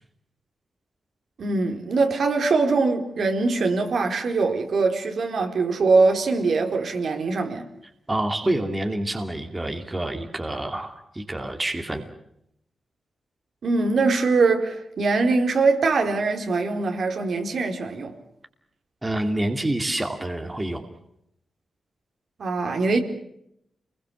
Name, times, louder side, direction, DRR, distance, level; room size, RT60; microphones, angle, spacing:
voice 1, 1.4-7.7 13.6-18.2 22.4-23.0, right 3 dB, 65° right, 4.2 m, -22 dB
voice 2, 8.1-12.0 19.0-20.8, right 1 dB, 15° right, 2.7 m, -27 dB
28.5 x 21.5 x 7.1 m
wide cardioid pair, 115°, 0 cm